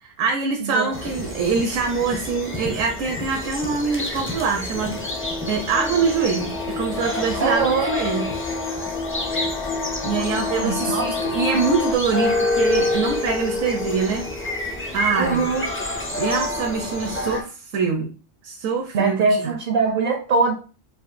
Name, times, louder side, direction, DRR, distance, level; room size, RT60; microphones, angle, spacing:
voice 1, 0.0-8.2 10.0-14.3 14.9-15.5 16.1-18.1 18.4-19.1 19.4-19.5, right 5 dB, 85° right, 2 dB, 1.1 m, -24 dB
voice 2, 0.6-1.0 7.4-7.9 10.2-10.3 10.6-11.1 15.2-15.6 18.9-20.5, right 4 dB, 60° right, 3 dB, 0.5 m, -22 dB
sound 1, 0.9-17.4, left 2 dB, 20° left, 0.3 m, -28 dB
sound 2, 4.7-11.9, left 3 dB, 70° left, 0.9 m, -29 dB
4.9 x 2.6 x 2.5 m, 0.36 s
omnidirectional pair, 1.3 m